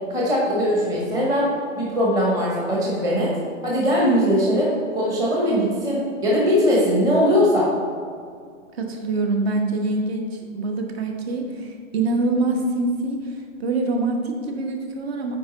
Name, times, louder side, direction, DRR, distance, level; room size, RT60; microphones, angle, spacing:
voice 1, 0.1-1.5 1.8-3.3 3.6-7.7, equal, 10° right, -4 dB, 0.8 m, -20 dB
voice 2, 8.7-15.4, right 2 dB, 50° right, 3 dB, 1.2 m, -25 dB
9.2 x 4.6 x 4.1 m, 2.2 s
hypercardioid pair, 150°, 39 cm